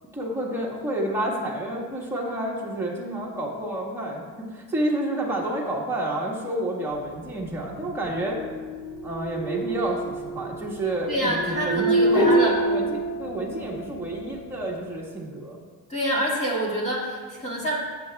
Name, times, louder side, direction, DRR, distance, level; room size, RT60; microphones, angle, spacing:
voice 1, 0.1-8.4 9.0-15.6, right 1 dB, 5° right, -4 dB, 1.6 m, -29 dB
sound 1, 7.2-13.7, right 1 dB, 55° left, 1.6 m, -26 dB
voice 2, 11.1-12.5 15.9-17.8, right 1 dB, 20° left, -4 dB, 2.1 m, -26 dB
15.0 x 7.8 x 2.3 m, 1.6 s
cardioid pair, 155°, 38 cm